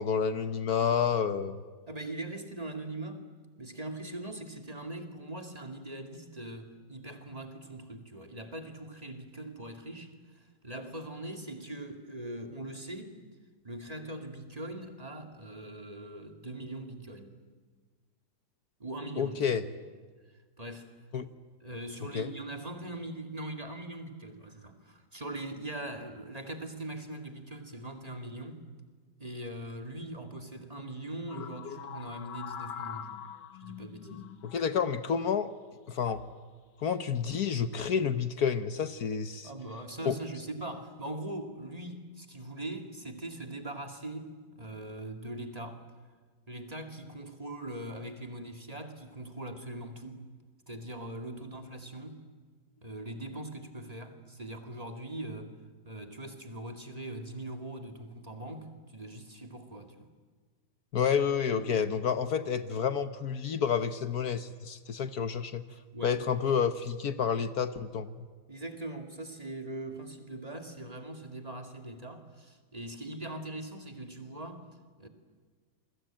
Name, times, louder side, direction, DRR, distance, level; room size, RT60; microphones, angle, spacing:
voice 1, 0.0-1.6 19.2-19.6 21.1-21.3 22.1-22.3 34.4-35.5 35.9-36.2 36.8-39.5 40.1-40.2 60.9-65.6 66.0-68.3, left 7 dB, 65° left, 1.4 m, -29 dB
voice 2, 1.9-3.3 3.6-13.2 13.6-17.4 18.8-19.7 20.6-20.9 21.6-28.7 29.2-33.1 33.6-34.3 39.4-45.8 46.5-50.2 50.7-52.2 52.8-55.5 55.8-60.1 65.7-66.2 68.5-74.7 75.0-75.1, right 1 dB, 20° right, 2.4 m, -41 dB
sound 1, 31.3-35.1 36.0-36.3 37.3-37.6, left 8 dB, 85° left, 1.8 m, -43 dB
29.0 x 23.0 x 9.0 m
omnidirectional pair, 1.8 m